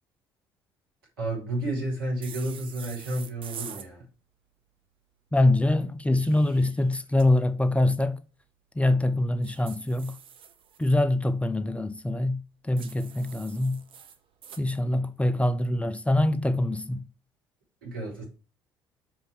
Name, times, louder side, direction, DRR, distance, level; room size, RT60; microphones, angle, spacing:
voice 1, 1.2-4.1 17.8-18.2, right 1 dB, 80° right, 3.9 m, -31 dB
sound 1, 2.2-3.9 5.9-7.3 9.4-10.9 12.8-14.6, right 7 dB, 45° right, 1.1 m, -45 dB
voice 2, 5.3-8.2 8.7-10.1 10.8-12.4 12.6-13.8 14.6-17.0, left 1 dB, 10° left, 0.7 m, -24 dB
6.6 x 5.2 x 4.7 m
figure-of-eight pair, 50°, 12 cm